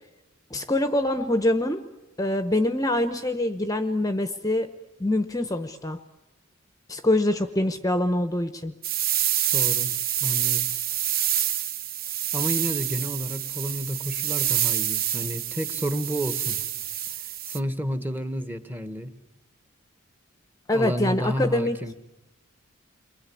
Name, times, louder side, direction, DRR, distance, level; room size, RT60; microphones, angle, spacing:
voice 1, 0.5-1.8 2.2-4.7 5.0-6.0 6.9-8.7 20.7-21.8, left 1 dB, 15° left, 9 dB, 0.9 m, -24 dB
sound 1, 8.8-17.6, right 11 dB, 45° right, 1.0 m, -27 dB
voice 2, 9.5-9.9 10.2-10.7 12.3-16.6 17.5-19.1 20.7-21.9, equal, 10° right, 9 dB, 1.4 m, -30 dB
29.5 x 23.0 x 8.5 m, 1.0 s
head